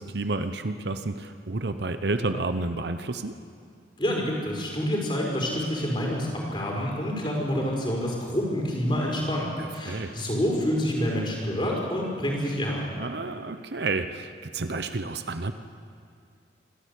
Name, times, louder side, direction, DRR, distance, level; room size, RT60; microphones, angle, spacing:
voice 1, 0.0-3.4 9.6-10.2 13.0-15.5, right 3 dB, 60° right, 9 dB, 0.9 m, -30 dB
voice 2, 4.0-12.9, equal, 25° left, -2 dB, 4.9 m, -27 dB
26.5 x 13.0 x 8.4 m, 2.5 s
head